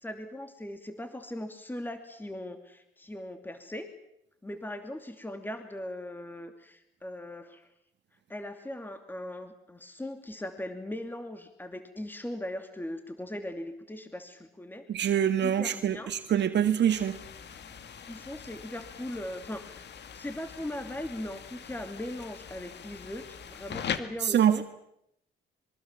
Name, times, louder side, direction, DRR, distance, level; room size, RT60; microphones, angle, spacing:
voice 1, 0.0-3.9 4.4-7.7 8.3-14.9 15.4-16.1 18.1-19.8 20.1-24.6, left 1 dB, 10° left, 2.8 m, -39 dB
voice 2, 14.9-17.2 24.2-24.6, right 9 dB, 60° right, 1.7 m, -25 dB
sound 1, 16.9-24.0, left 8 dB, 60° left, 2.1 m, -42 dB
25.5 x 23.5 x 7.5 m
cardioid pair, 90°, 20 cm